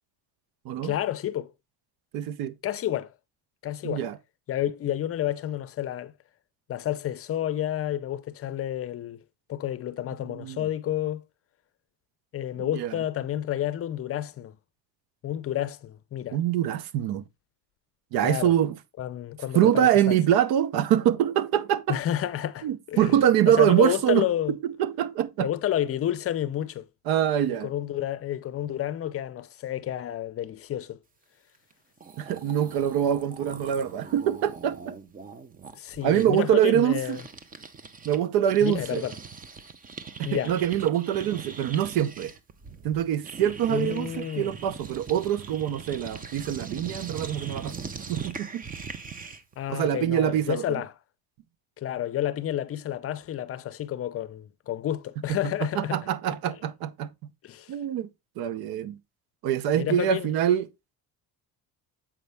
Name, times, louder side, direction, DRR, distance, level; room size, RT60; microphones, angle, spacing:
voice 1, 0.8-1.5 2.6-3.1 3.6-4.0 4.5-6.1 6.7-9.2 9.5-11.2 12.3-14.5 15.2-16.4 18.2-18.5 19.0-20.2 21.9-23.2 23.5-24.6 25.4-26.9 27.5-31.0 35.7-37.2 38.6-39.2 40.2-40.5 43.7-44.5 49.6-50.9 51.8-56.0 56.5-56.6 57.4-57.7 59.7-60.3, left 12 dB, 40° left, 0.6 m, -30 dB
voice 2, 2.1-2.5 3.8-4.2 10.3-10.6 12.6-12.9 16.3-17.2 18.1-18.7 19.5-22.0 22.6-24.3 24.6-25.5 27.1-27.7 32.2-34.9 36.0-37.2 38.1-39.0 40.2-42.3 42.8-47.7 48.1-48.6 49.7-50.8 55.3-57.1 57.7-58.1 58.4-59.0 59.4-60.7, right 10 dB, 75° right, 0.8 m, -24 dB
sound 1, 31.7-31.8 32.0-38.2 38.4-49.5, right 5 dB, 25° right, 0.6 m, -41 dB
7.5 x 5.3 x 3.3 m
cardioid pair, 145°, 37 cm